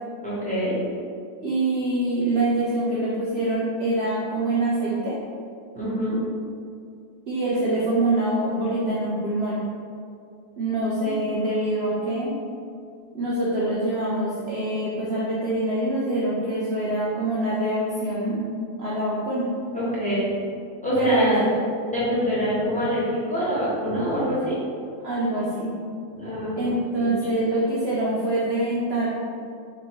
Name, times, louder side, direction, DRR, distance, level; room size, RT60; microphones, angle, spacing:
voice 1, 0.2-0.8 5.7-6.2 11.0-11.2 19.7-20.3 20.8-21.4 21.9-24.6 26.1-26.7 27.0-27.1, equal, 5° left, -10 dB, 1.1 m, -25 dB
voice 2, 1.4-5.2 7.3-9.7 10.6-12.3 13.1-18.5 18.8-19.4 21.0-21.6 22.5-22.6 25.0-25.8 26.6-29.1, right 1 dB, 60° right, -7 dB, 0.7 m, -25 dB
4.3 x 2.8 x 4.5 m, 2.3 s
omnidirectional pair, 1.7 m